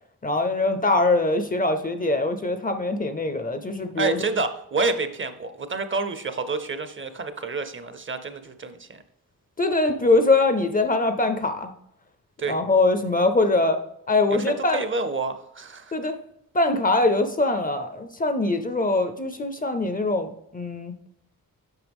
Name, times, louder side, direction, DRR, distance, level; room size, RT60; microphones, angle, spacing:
voice 1, 0.2-4.2 9.6-11.7 12.5-13.8 14.1-14.8 15.9-16.2 16.5-20.9, left 2 dB, 25° left, 9 dB, 0.5 m, -22 dB
voice 2, 4.0-9.0 12.4-12.6 14.3-14.4 14.7-16.0, right 3 dB, 35° right, 11 dB, 0.6 m, -28 dB
8.0 x 5.6 x 3.5 m, 0.80 s
wide cardioid pair, 150°, 35 cm